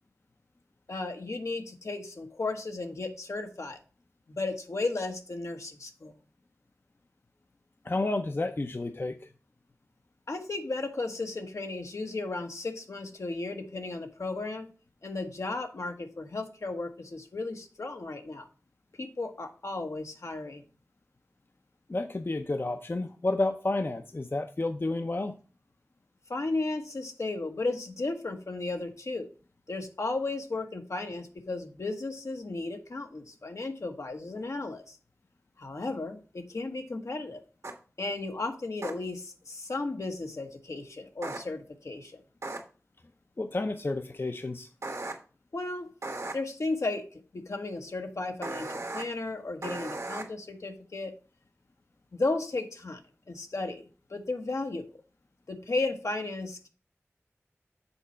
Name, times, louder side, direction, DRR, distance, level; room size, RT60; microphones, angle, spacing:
voice 1, 0.9-3.8 4.3-6.1 10.3-14.7 15.0-18.5 19.0-20.6 26.3-29.3 29.7-35.0 35.6-37.4 38.0-42.2 45.5-45.9 46.3-51.1 52.1-53.0 53.3-54.9 55.5-56.7, left 2 dB, 80° left, 4 dB, 1.1 m, -34 dB
voice 2, 7.8-9.3 21.9-25.3 43.4-44.7, left 2 dB, 45° left, 7 dB, 0.6 m, -30 dB
sound 1, 37.6-37.7 38.8-38.9 41.2-41.4 42.4-42.6 44.8-45.1 46.0-46.3 48.4-49.0 49.6-50.2, right 2 dB, 70° right, 1.5 m, -36 dB
7.0 x 4.1 x 5.5 m, 0.37 s
wide cardioid pair, 40°, 5 cm